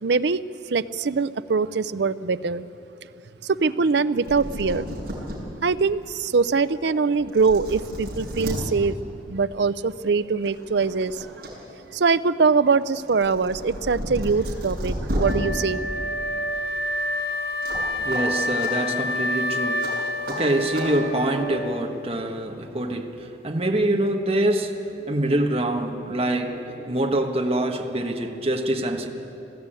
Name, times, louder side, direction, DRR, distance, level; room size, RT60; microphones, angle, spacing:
voice 1, 0.0-0.4 0.7-2.7 3.4-4.9 5.6-9.0 9.3-11.3 11.9-15.8, right 4 dB, 65° right, 15 dB, 0.5 m, -23 dB
sound 1, 4.0-4.1 4.2-5.4 5.9-6.0 6.9-7.0 7.3-8.6 9.9-10.0 10.4-11.5 11.8-15.3 17.6-17.8 18.1-18.2 18.6-18.7 19.8-19.9 20.3-20.4 20.7-20.9, equal, 50° right, 6.4 m, -32 dB
Wind instrument woodwind instrument, 15.2-22.2, left 1 dB, 55° left, 0.8 m, -28 dB
voice 2, 17.7-19.9 20.3-29.1, right 1 dB, 30° right, 2 dB, 1.3 m, -25 dB
20.5 x 15.0 x 9.0 m, 2.8 s
head